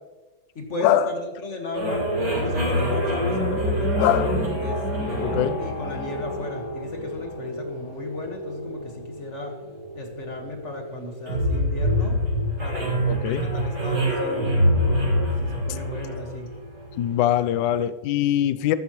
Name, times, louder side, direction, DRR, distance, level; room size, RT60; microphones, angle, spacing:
voice 1, 0.6-4.1 4.6-9.6 10.0-12.2 12.6-14.5 15.4-16.5, left 2 dB, 40° left, 2 dB, 1.8 m, -35 dB
sound 1, 1.7-17.1, equal, 75° right, 4.6 m, -26 dB
voice 2, 4.0-4.4 5.2-5.5 13.0-13.5 17.0-18.8, left 11 dB, 70° left, 14 dB, 1.2 m, -22 dB
14.0 x 13.0 x 3.1 m, 1.3 s
omnidirectional pair, 2.2 m